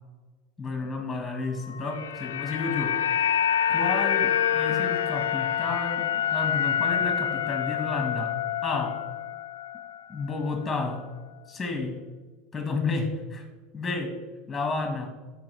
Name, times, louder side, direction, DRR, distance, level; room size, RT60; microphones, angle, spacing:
voice 1, 0.6-3.0 3.7-8.4 8.6-9.0 10.1-11.1 11.5-12.0 12.5-13.4 13.7-14.2 14.5-15.1, left 3 dB, 15° left, 5 dB, 1.8 m, -31 dB
sound 1, 1.7-10.0 10.3-10.5, left 9 dB, 75° left, 0.4 m, -27 dB
13.5 x 5.5 x 3.4 m, 1.3 s
figure-of-eight pair, 75°, 0 cm